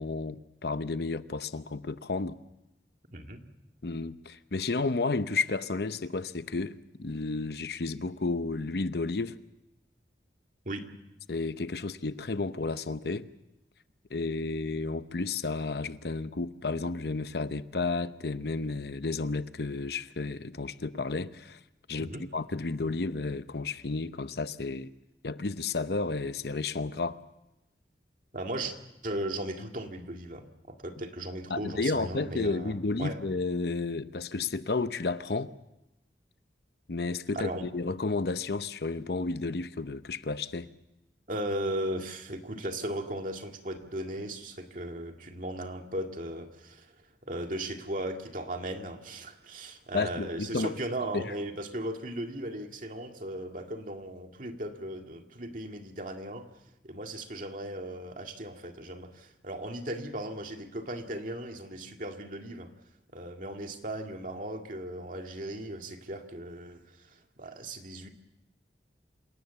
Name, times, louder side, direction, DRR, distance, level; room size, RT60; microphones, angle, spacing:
voice 1, 0.0-2.4 3.8-9.4 11.3-13.3 14.1-21.6 21.9-24.9 25.2-27.2 31.5-35.5 36.9-40.7 49.9-50.7 51.1-51.3, left 3 dB, 60° left, 0.8 m, -32 dB
voice 2, 28.3-28.8 29.0-32.7 33.0-33.2 37.3-37.6 41.3-47.0 47.2-56.5 56.8-62.7 63.1-68.1, right 1 dB, 45° right, 2.1 m, -37 dB
27.5 x 17.5 x 7.0 m
head